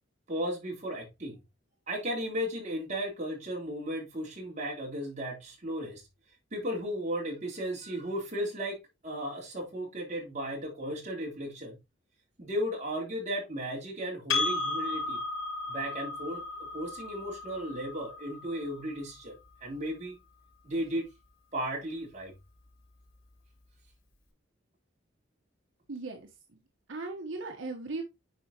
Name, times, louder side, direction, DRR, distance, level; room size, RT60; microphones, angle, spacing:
voice 1, 0.3-1.4 1.9-6.0 6.5-11.8 12.4-15.2 15.7-16.4 16.7-19.3 19.6-20.1 20.6-21.1 21.5-22.3, equal, 35° right, 3.5 m, -35 dB
Percussion, 14.3-19.1, left 3 dB, 80° left, 4.1 m, -34 dB
voice 2, 25.9-26.3 26.9-28.0, right 3 dB, 70° right, 1.1 m, -37 dB
9.7 x 4.9 x 2.9 m
head